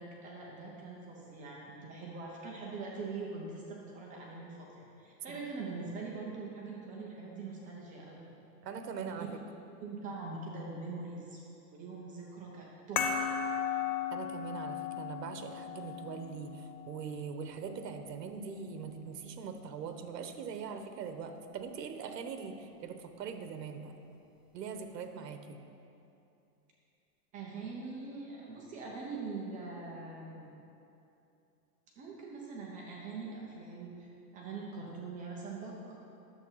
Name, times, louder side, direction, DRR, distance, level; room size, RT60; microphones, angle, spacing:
voice 1, 0.0-8.2 9.1-9.3 9.8-11.4 11.7-13.2 27.3-30.5 32.0-36.0, right 4 dB, 15° right, -3 dB, 0.7 m, -43 dB
voice 2, 8.6-9.3 14.1-23.9 24.5-25.6, right 6 dB, 75° right, 7 dB, 1.2 m, -42 dB
sound 1, 13.0-18.0, left 7 dB, 30° left, 0.5 m, -37 dB
10.5 x 7.7 x 5.6 m, 2.7 s
supercardioid pair, 160°, 49 cm